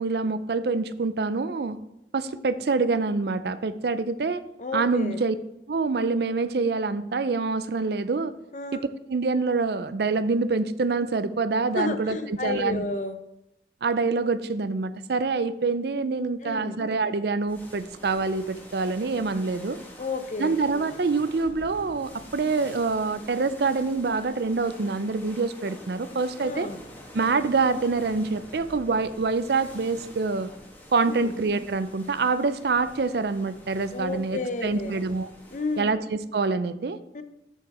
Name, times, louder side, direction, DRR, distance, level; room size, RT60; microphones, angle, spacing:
voice 1, 0.0-1.8 2.1-4.4 4.7-5.4 5.7-8.3 8.7-12.8 13.8-19.8 20.4-26.7 27.1-30.5 30.9-35.3 35.8-37.0, right 4 dB, 60° right, 13 dB, 0.5 m, -26 dB
voice 2, 4.6-5.2 8.5-8.8 11.7-13.2 16.4-16.8 20.0-20.5 26.4-26.8 31.1-31.3 33.9-34.9 35.5-35.9 37.1-37.2, left 3 dB, 45° left, 10 dB, 0.6 m, -31 dB
sound 1, 17.5-35.8, equal, 10° left, 1.4 m, -47 dB
13.5 x 4.7 x 4.2 m, 0.89 s
head